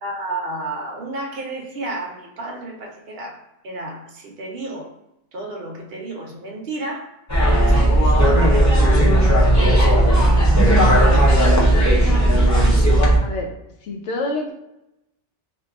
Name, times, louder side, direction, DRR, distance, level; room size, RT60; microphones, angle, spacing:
voice 1, 0.0-4.9 5.3-7.1 7.6-9.1 9.5-10.8 11.1-11.4 12.1-12.8, right 2 dB, 65° right, 0 dB, 0.9 m, -32 dB
sound 1, 7.3-13.2, right 1 dB, 25° left, 0.4 m, -15 dB
voice 2, 13.2-13.5 13.8-14.5, left 2 dB, 80° left, 1 dB, 0.9 m, -27 dB
2.6 x 2.3 x 3.4 m, 0.89 s
omnidirectional pair, 1.1 m